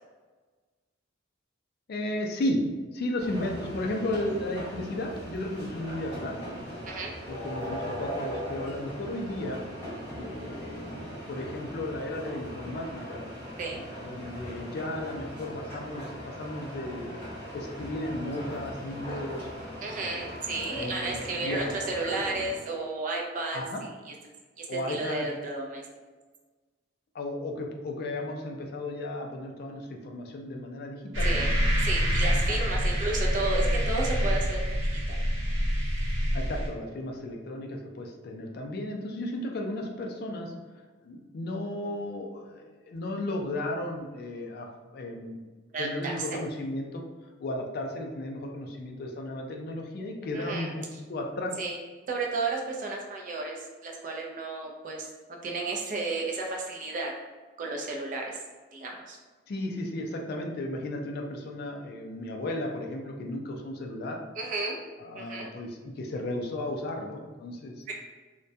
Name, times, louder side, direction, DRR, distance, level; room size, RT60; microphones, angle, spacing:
voice 1, 1.9-2.6 2.9-6.4 7.3-9.6 10.1-13.3 14.0-17.2 17.5-19.5 20.5-21.7 23.5-23.9 24.7-25.3 27.1-31.3 32.5-32.6 36.3-40.5 41.0-45.4 45.8-47.0 47.4-51.6 59.5-64.2 65.0-67.8, left 1 dB, 50° left, 1 dB, 0.3 m, -34 dB
sound 1, 3.2-22.5, equal, 15° left, 1.0 m, -39 dB
voice 2, 19.8-23.6 24.1-24.2 24.6-25.8 31.2-31.5 31.8-35.2 45.7-46.4 50.3-51.0 51.6-51.8 52.1-55.1 55.4-57.1 57.6-58.4 58.7-59.2 64.4-64.8 65.1-65.5 67.9-68.0, right 3 dB, 40° right, 0 dB, 0.4 m, -33 dB
sound 2, 31.1-36.7, equal, 80° right, 0.7 m, -26 dB
2.2 x 2.1 x 2.6 m, 1.3 s
head